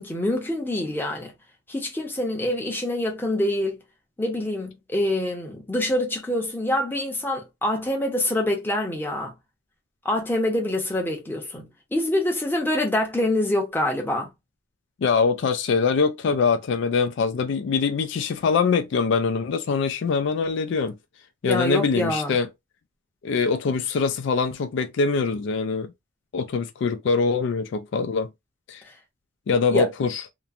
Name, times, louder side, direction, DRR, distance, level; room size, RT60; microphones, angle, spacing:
voice 1, 0.0-1.3 1.7-3.8 4.2-9.3 10.0-14.3 21.4-22.4 29.7-29.9, left 1 dB, 10° left, 0.8 m, -25 dB
voice 2, 15.0-21.0 21.4-22.5 23.2-25.9 26.3-28.3 28.7-28.8 29.5-30.2, left 5 dB, 65° left, 0.3 m, -23 dB
3.0 x 2.1 x 2.4 m
head